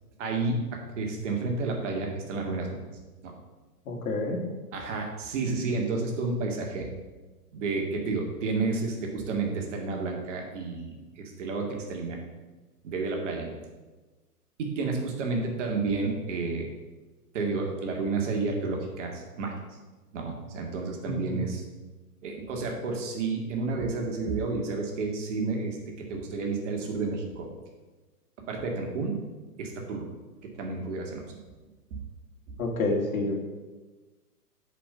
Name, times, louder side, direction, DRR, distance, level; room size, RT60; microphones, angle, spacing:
voice 1, 0.2-0.7 1.0-2.8 3.2-3.3 4.7-6.9 7.5-12.2 12.8-13.7 14.6-16.7 17.3-19.6 20.1-21.6 22.2-27.5 28.5-29.2 29.6-30.1 30.4-31.2 32.5-32.6, right 3 dB, 50° right, 1 dB, 2.2 m, -31 dB
voice 2, 3.9-4.4 21.1-21.4 32.6-33.3, left 2 dB, 60° left, 1 dB, 2.3 m, -28 dB
8.3 x 5.3 x 7.5 m, 1.2 s
figure-of-eight pair, 115°, 47 cm